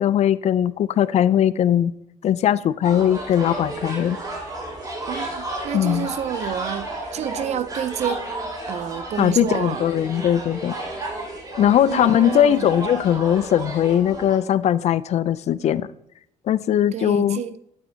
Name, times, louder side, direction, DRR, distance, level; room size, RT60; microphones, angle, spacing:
voice 1, 0.0-1.9 2.2-4.2 5.7-6.1 9.2-10.7 11.6-15.9 16.5-17.4, left 10 dB, 55° left, 0.4 m, -20 dB
sound 1, 2.8-14.4, right 2 dB, 30° right, 4.0 m, -32 dB
voice 2, 5.1-8.3 8.7-9.9 11.6-12.7 16.9-17.6, right 9 dB, 55° right, 0.6 m, -29 dB
12.0 x 8.9 x 2.8 m
cardioid pair, 100°, 13 cm